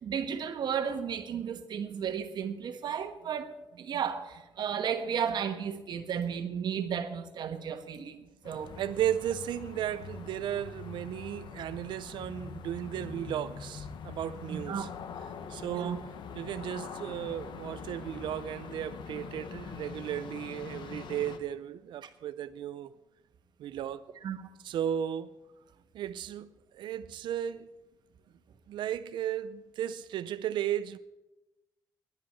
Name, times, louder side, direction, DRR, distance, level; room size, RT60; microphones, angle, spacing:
voice 1, 0.0-3.5 3.8-4.3 4.6-8.2 8.4-8.7 14.5-14.9 15.7-16.0 24.2-24.4, right 7 dB, 70° right, 1.3 m, -33 dB
sound 1, 8.4-21.4, left 6 dB, 85° left, 1.2 m, -44 dB
voice 2, 8.8-14.9 15.2-22.9 23.6-24.0 24.6-25.3 25.9-27.7 28.7-31.0, right 10 dB, 85° right, 0.5 m, -35 dB
10.5 x 10.5 x 8.5 m
cardioid pair, 125°, 8 cm